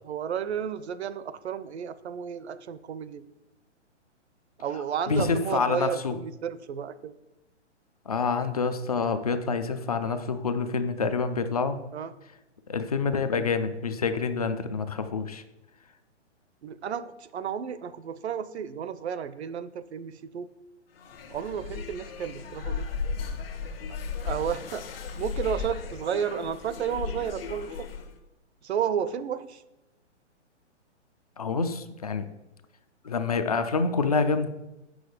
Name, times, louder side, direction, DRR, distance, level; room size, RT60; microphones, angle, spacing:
voice 1, 0.0-3.2 4.6-7.1 11.9-12.1 16.6-20.5 21.3-22.9 24.2-24.9 25.2-27.9 28.6-29.6, right 8 dB, 65° right, 15 dB, 0.7 m, -32 dB
voice 2, 5.1-6.1 8.1-11.8 12.7-15.4 31.4-32.3 33.0-34.5, left 4 dB, 35° left, 10 dB, 0.4 m, -27 dB
sound 1, 21.0-28.1, left 5 dB, 55° left, 1.1 m, -35 dB
7.6 x 6.3 x 4.9 m, 0.99 s
hypercardioid pair, 170°, 36 cm